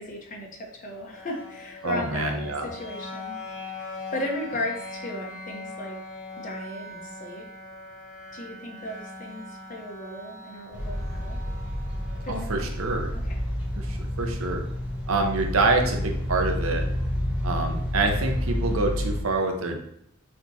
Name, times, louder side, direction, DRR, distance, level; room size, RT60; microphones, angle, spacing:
voice 1, 0.0-2.4 2.6-3.4 3.7-6.0 6.4-7.5 8.3-11.4 12.2-12.7 13.1-13.4, left 1 dB, 40° left, 1 dB, 1.0 m, -36 dB
sound 1, 0.9-14.8, left 2 dB, 75° left, 1.8 m, -42 dB
voice 2, 1.8-2.7 12.3-13.1 13.7-14.6 15.1-16.9 17.4-19.8, right 3 dB, 75° right, 3 dB, 0.7 m, -26 dB
sound 2, 10.7-19.2, left 1 dB, 5° right, 0.8 m, -29 dB
6.5 x 2.9 x 2.7 m, 0.76 s
head